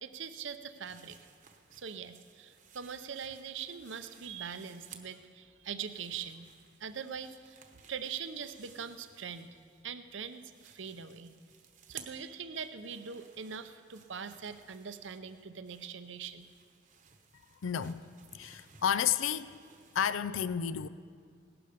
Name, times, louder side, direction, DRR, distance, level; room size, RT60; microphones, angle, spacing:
voice 1, 0.0-1.2 1.7-6.5 6.8-7.6 7.9-9.5 9.8-11.3 11.9-16.5, right 7 dB, 70° right, 0.7 m, -42 dB
sound 1, 0.7-5.3 5.6-9.8 10.1-20.0, right 7 dB, 40° right, 1.0 m, -58 dB
voice 2, 17.6-18.0 18.3-19.6 19.9-20.9, left 8 dB, 80° left, 0.4 m, -31 dB
18.0 x 12.0 x 5.1 m
head